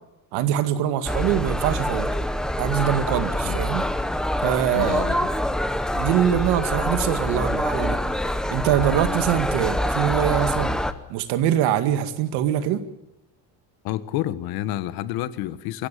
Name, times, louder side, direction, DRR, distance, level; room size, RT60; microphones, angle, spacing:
voice 1, 0.3-2.2 2.6-3.9 4.4-5.1 5.9-8.0 8.5-10.8 11.1-12.8, right 10 dB, 70° right, 10 dB, 2.1 m, -23 dB
sound 1, 1.0-10.9, left 1 dB, ahead, 0.8 m, -25 dB
voice 2, 4.7-5.2 13.8-15.9, left 14 dB, 60° left, 14 dB, 1.4 m, -29 dB
24.5 x 16.0 x 9.9 m, 0.91 s
cardioid pair, 170°, 41 cm